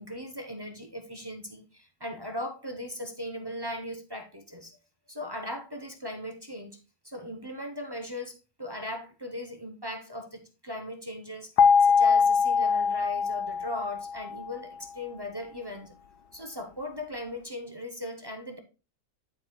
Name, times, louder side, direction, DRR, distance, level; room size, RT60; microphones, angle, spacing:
voice 1, 0.0-4.8 5.1-6.8 7.0-11.5 11.8-15.9 16.3-18.6, left 1 dB, 30° right, 0.4 m, -38 dB
sound 1, 11.6-14.5, left 6 dB, 85° left, 1.2 m, -23 dB
11.5 x 4.6 x 2.2 m
omnidirectional pair, 1.6 m